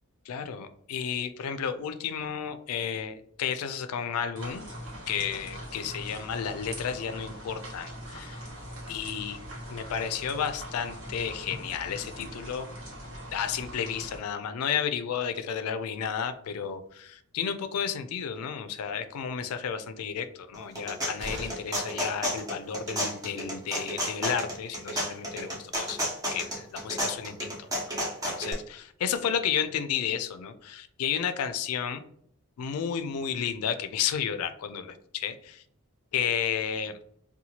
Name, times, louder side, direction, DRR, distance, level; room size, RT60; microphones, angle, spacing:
voice 1, 0.3-4.7 5.1-8.4 8.9-9.4 9.7-12.7 13.3-27.7 28.3-32.0 32.6-35.6 36.1-37.0, left 7 dB, 80° left, 10 dB, 0.3 m, -32 dB
sound 1, 4.4-14.2, equal, 75° right, 1.2 m, -41 dB
sound 2, 20.5-28.5, equal, 15° right, 0.7 m, -32 dB
sound 3, 21.2-21.9 23.9-24.0 24.3-24.4, right 1 dB, 55° right, 0.5 m, -40 dB
2.8 x 2.2 x 2.8 m, 0.65 s
head